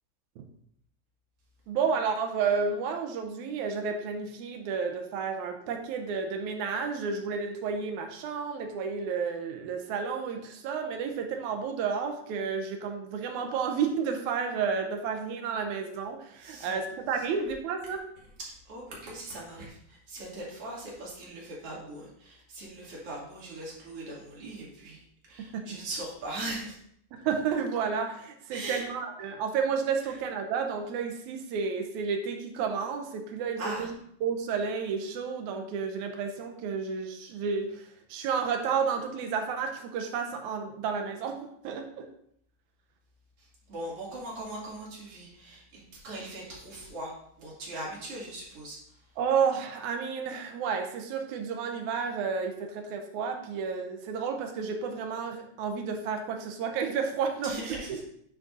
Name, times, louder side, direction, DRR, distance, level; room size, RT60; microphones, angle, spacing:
voice 1, 1.7-18.0 25.4-25.7 27.1-33.9 34.2-42.1 49.2-58.0, right 6 dB, 85° right, 4 dB, 2.2 m, -31 dB
voice 2, 16.4-16.8 18.5-25.0 25.3-26.8 28.5-28.8 30.1-30.2 33.6-33.9 43.7-47.1 47.4-48.8 57.4-58.0, right 2 dB, 55° right, -5 dB, 3.3 m, -40 dB
8.7 x 8.0 x 2.6 m, 0.69 s
omnidirectional pair, 3.3 m